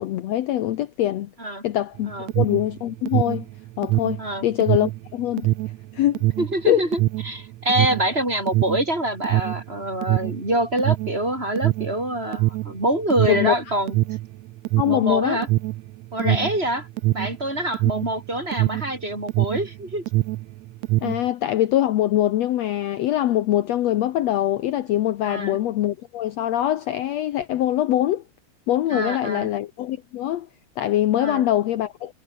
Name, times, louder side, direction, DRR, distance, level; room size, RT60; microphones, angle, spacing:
voice 1, 0.0-1.3 1.6-3.5 3.8-5.5 5.9-6.3 6.7-6.8 13.3-13.8 14.8-15.4 16.2-16.4 21.0-28.2 28.7-30.5 30.8-32.1, left 13 dB, 70° left, 1.9 m, -23 dB
Alarm, 2.0-19.7 20.0-21.3, right 18 dB, 80° right, 1.6 m, -24 dB
voice 2, 6.4-7.0 7.2-14.0 14.9-15.5 16.1-16.9 17.1-20.0 25.2-25.6 28.9-29.5 31.2-31.5, right 1 dB, 15° right, 6.6 m, -25 dB
omnidirectional pair, 3.6 m